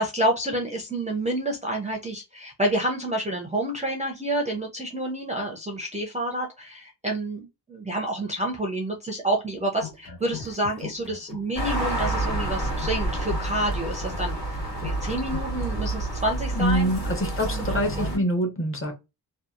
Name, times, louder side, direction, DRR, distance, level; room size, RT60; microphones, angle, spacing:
voice 1, 0.0-14.3 14.8-16.9 17.5-18.2, right 1 dB, 20° right, 0.4 m, -28 dB
sound 1, 9.7-11.5 11.8-15.5, left 7 dB, 55° left, 1.3 m, -40 dB
sound 2, 11.6-18.2, right 1 dB, 85° left, 1.6 m, -29 dB
voice 2, 16.5-18.9, equal, 30° left, 0.8 m, -25 dB
2.7 x 2.2 x 2.3 m
wide cardioid pair, 150°, 41 cm